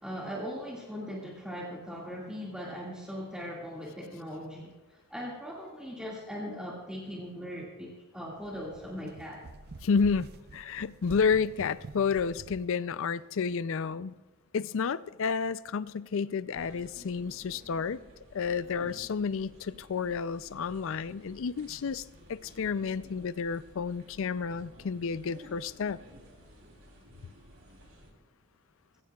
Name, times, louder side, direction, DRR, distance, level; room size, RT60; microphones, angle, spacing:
voice 1, 0.0-9.4, equal, 5° right, 2.0 m, -39 dB
sound 1, 8.4-12.7, right 2 dB, 45° right, 0.6 m, -47 dB
voice 2, 9.8-14.1 14.5-18.0 18.3-26.0, left 5 dB, 60° left, 0.4 m, -31 dB
sound 2, 16.5-28.1, equal, 65° right, 3.2 m, -54 dB
21.5 x 16.5 x 2.4 m
head